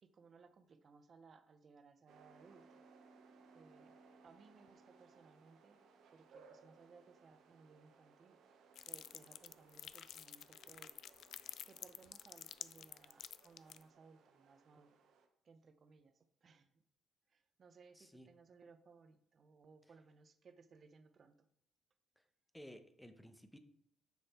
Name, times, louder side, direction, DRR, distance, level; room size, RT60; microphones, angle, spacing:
voice 1, 0.0-2.8 3.5-4.0 4.2-5.8 6.1-8.4 8.8-11.0 11.6-15.0 15.4-16.8 17.3-21.5, right 4 dB, 50° right, 10 dB, 0.7 m, -63 dB
sound 1, 2.1-15.3, right 4 dB, 80° right, 0.9 m, -65 dB
sound 2, 8.7-13.8, left 10 dB, 70° left, 0.3 m, -50 dB
voice 2, 17.9-18.3 22.2-22.3 22.5-23.6, equal, 5° left, 8 dB, 0.9 m, -56 dB
6.7 x 6.2 x 4.3 m, 0.69 s
cardioid pair, 90°, 0 cm